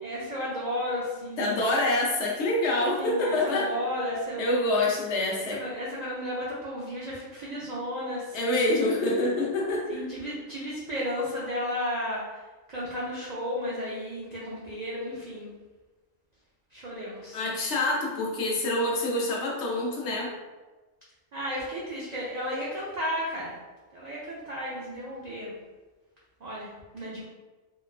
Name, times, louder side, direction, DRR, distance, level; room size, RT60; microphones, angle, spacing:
voice 1, 0.0-1.5 3.0-4.8 5.3-8.8 9.9-12.4 12.7-15.5 16.7-17.4 21.3-23.6 23.9-25.5 26.4-27.2, equal, 65° right, -7 dB, 0.4 m, -33 dB
voice 2, 1.4-3.7 4.4-5.6 8.3-9.9 17.3-20.3, left 2 dB, 65° left, -3 dB, 0.8 m, -26 dB
3.2 x 2.1 x 2.3 m, 1.2 s
omnidirectional pair, 1.3 m